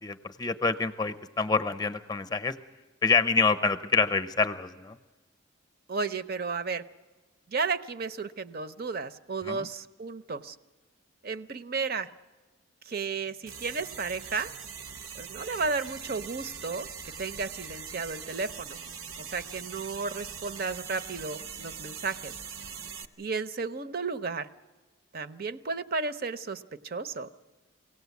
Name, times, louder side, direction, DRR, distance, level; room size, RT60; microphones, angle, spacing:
voice 1, 0.0-2.5 3.0-5.0 9.5-9.7, left 4 dB, 20° left, 10 dB, 0.7 m, -27 dB
voice 2, 5.9-6.8 7.5-10.6 11.2-12.1 12.9-14.5 15.1-16.9 17.2-18.8 19.2-22.3 23.2-24.5 25.1-27.3, right 4 dB, 45° right, 12 dB, 0.6 m, -33 dB
sound 1, 13.5-23.1, right 6 dB, 85° right, 1.0 m, -42 dB
23.5 x 17.5 x 8.2 m, 1.3 s
head